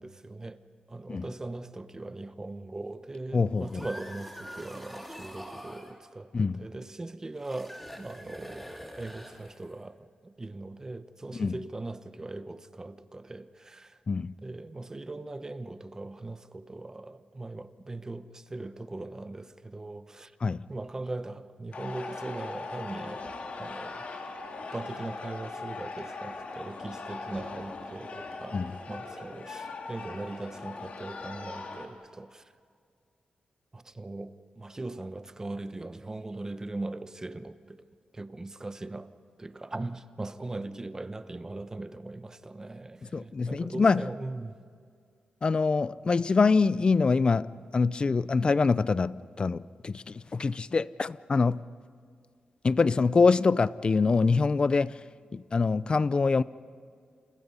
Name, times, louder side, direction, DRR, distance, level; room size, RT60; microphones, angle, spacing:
voice 1, 0.0-8.7 9.0-14.0 14.4-20.4 20.7-24.1 24.7-32.5 33.7-37.9 38.1-39.1 39.4-44.6, right 2 dB, 20° right, 1.0 m, -40 dB
voice 2, 3.3-3.8 6.3-6.6 11.4-11.6 14.1-14.3 20.4-20.6 28.5-28.7 43.1-44.1 45.4-51.6 52.6-55.0 55.3-56.4, left 4 dB, 35° left, 0.6 m, -25 dB
sound 1, 3.5-6.0 7.4-9.8, equal, 5° left, 2.6 m, -45 dB
sound 2, 21.7-31.9, left 3 dB, 60° left, 3.0 m, -40 dB
30.0 x 28.5 x 5.6 m
wide cardioid pair, 105°, 3 cm